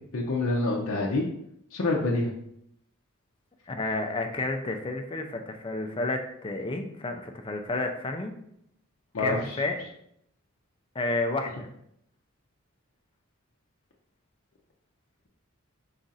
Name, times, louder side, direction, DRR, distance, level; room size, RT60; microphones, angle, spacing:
voice 1, 0.1-1.3 1.7-2.3 9.1-9.6, left 2 dB, 70° left, -2 dB, 0.6 m, -26 dB
voice 2, 3.7-8.3 9.2-9.8 11.0-11.7, left 2 dB, 25° left, 4 dB, 0.4 m, -31 dB
4.9 x 2.5 x 4.0 m, 0.73 s
head